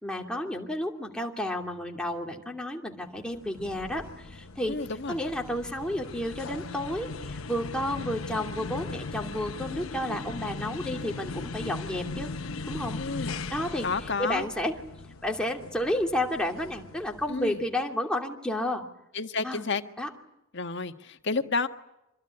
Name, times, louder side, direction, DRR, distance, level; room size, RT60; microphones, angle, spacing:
voice 1, 0.0-4.8 5.1-12.3 12.7-13.9 14.2-14.8 15.2-18.8 19.4-19.6 20.0-20.1, left 1 dB, 5° left, 1 dB, 2.7 m, -31 dB
sound 1, 3.2-17.7, left 3 dB, 85° left, 1.2 m, -39 dB
voice 2, 4.7-5.2 12.9-13.3 13.8-14.5 17.3-17.6 19.1-19.8 20.5-21.7, left 4 dB, 60° left, 6 dB, 1.6 m, -30 dB
26.0 x 22.0 x 9.9 m, 0.88 s
head